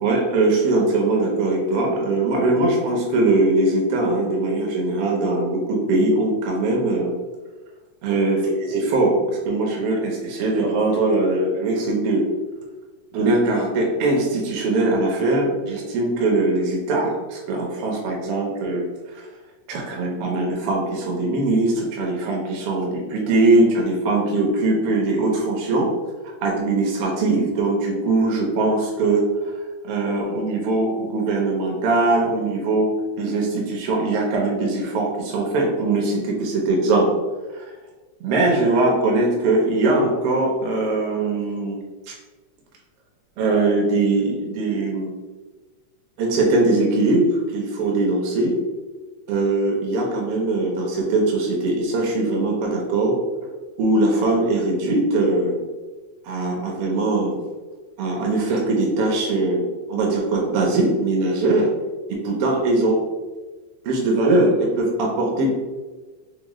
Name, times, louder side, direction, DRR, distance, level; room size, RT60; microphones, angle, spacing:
voice 1, 0.0-7.1 8.0-9.1 9.4-12.2 13.1-18.9 19.7-25.9 26.4-29.3 29.8-32.9 33.2-37.1 37.6-37.7 38.2-41.8 42.1-42.2 43.4-45.1 46.2-48.6 49.3-53.1 53.8-55.6 56.2-57.3 58.0-61.7 62.1-63.0 63.8-65.5, right 2 dB, 70° right, -1 dB, 1.4 m, -21 dB
5.0 x 2.1 x 3.0 m, 1.3 s
omnidirectional pair, 3.4 m